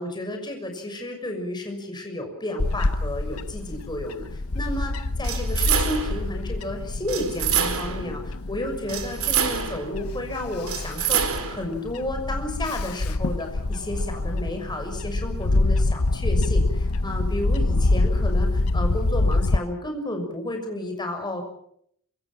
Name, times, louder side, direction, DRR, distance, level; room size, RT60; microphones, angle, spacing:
voice 1, 0.0-21.4, left 1 dB, 20° left, 4 dB, 6.5 m, -32 dB
Bird / Wind, 2.6-19.6, left 2 dB, 80° left, 0.9 m, -26 dB
sound 1, 5.2-6.2 7.1-8.1 8.9-9.9 10.7-11.6, right 8 dB, 80° right, 4.6 m, -26 dB
27.0 x 25.5 x 6.0 m, 0.67 s
head